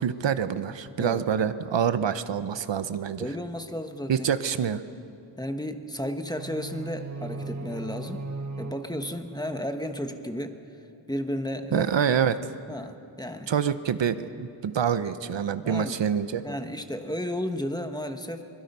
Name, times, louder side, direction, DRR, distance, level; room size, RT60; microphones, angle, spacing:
voice 1, 0.0-3.3 4.1-4.8 11.7-12.4 13.5-16.4, right 8 dB, 70° right, 12 dB, 0.8 m, -26 dB
voice 2, 3.2-4.3 5.4-8.2 8.6-10.6 11.1-11.9 12.7-13.5 15.6-16.0 16.4-18.4, equal, 10° left, 6 dB, 1.0 m, -33 dB
sound 1, 6.3-10.3, right 3 dB, 40° right, 0.9 m, -38 dB
24.5 x 22.5 x 5.4 m, 2.7 s
wide cardioid pair, 145°, 46 cm